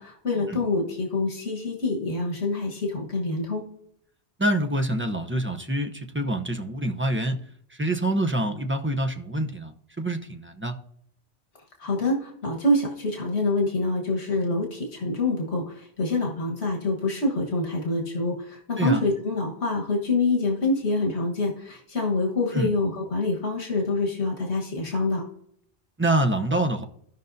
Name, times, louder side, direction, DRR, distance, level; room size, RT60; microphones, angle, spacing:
voice 1, 0.0-3.6 11.8-15.6 16.0-25.3, left 2 dB, 80° left, 0 dB, 1.7 m, -26 dB
voice 2, 4.4-7.4 7.7-10.8 18.8-19.0 22.5-22.7 26.0-26.8, right 1 dB, 15° right, 4 dB, 0.6 m, -26 dB
15.5 x 5.5 x 2.6 m, 0.68 s
omnidirectional pair, 1.1 m